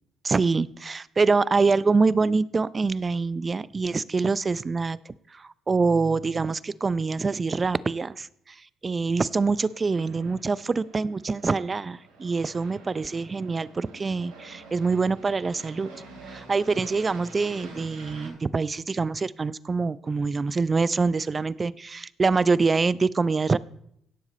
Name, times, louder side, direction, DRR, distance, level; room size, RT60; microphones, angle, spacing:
voice 1, 0.2-5.0 5.3-15.9 16.3-23.6, right 4 dB, 35° right, 19 dB, 0.5 m, -25 dB
Aircraft, 9.1-18.3, right 3 dB, 90° right, 3.8 m, -47 dB
17.0 x 7.2 x 4.2 m, 0.72 s
hypercardioid pair, 55°, 0 cm